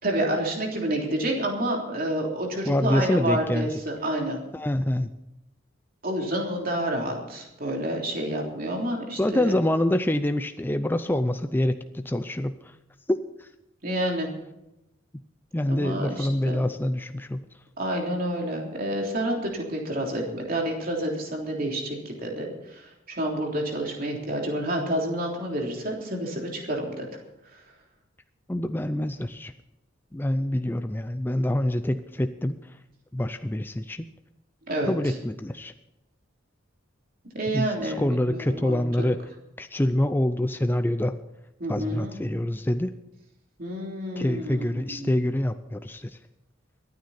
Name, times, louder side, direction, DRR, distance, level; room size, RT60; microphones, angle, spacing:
voice 1, 0.0-4.4 6.0-9.5 13.8-14.3 15.7-16.6 17.8-27.1 34.7-35.1 37.3-39.1 41.6-42.2 43.6-45.2, right 1 dB, 45° right, 0 dB, 3.3 m, -29 dB
voice 2, 2.6-3.7 4.5-5.1 9.1-12.6 13.1-13.5 15.5-17.4 28.5-29.5 30.1-32.6 33.1-34.0 34.9-35.7 37.5-39.2 39.6-41.1 41.7-42.9 44.2-46.2, left 1 dB, 10° left, 9 dB, 0.4 m, -26 dB
24.0 x 9.5 x 4.3 m, 0.89 s
head